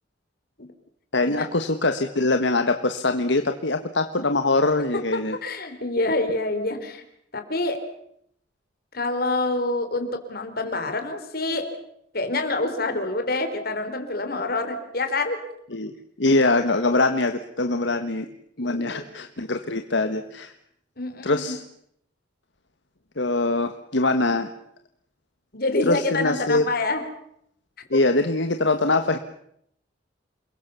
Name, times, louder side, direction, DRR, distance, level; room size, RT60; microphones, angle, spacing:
voice 1, 1.1-5.4 15.7-15.9 16.2-18.3 18.6-20.5 21.2-21.6 23.2-24.5 25.9-26.7 27.9-29.2, left 2 dB, 75° left, 7 dB, 1.5 m, -23 dB
voice 2, 5.1-7.0 7.3-7.8 8.9-11.7 12.1-15.4 18.6-19.0 21.0-21.6 25.5-27.0, left 2 dB, 55° left, 7 dB, 4.2 m, -27 dB
29.0 x 22.0 x 7.1 m, 0.71 s
head